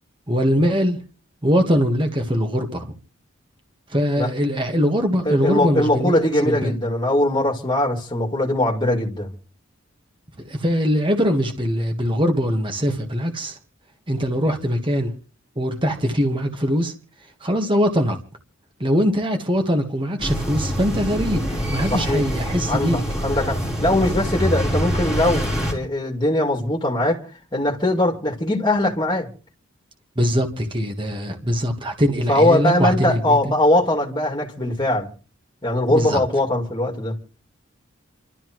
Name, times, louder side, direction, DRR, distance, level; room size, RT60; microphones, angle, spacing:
voice 1, 0.3-1.0 1.4-2.9 3.9-6.1 6.4-6.7 10.4-13.6 14.1-15.1 15.5-16.9 17.4-18.2 18.8-23.0 30.1-33.5 35.9-36.2, equal, 25° right, 1.5 m, -22 dB
voice 2, 5.2-9.3 21.9-22.2 22.7-27.2 27.5-29.3 32.3-35.1 35.6-37.2, left 1 dB, 20° left, 2.5 m, -21 dB
sound 1, 20.2-25.7, equal, 5° right, 4.0 m, -25 dB
28.5 x 13.0 x 3.1 m
head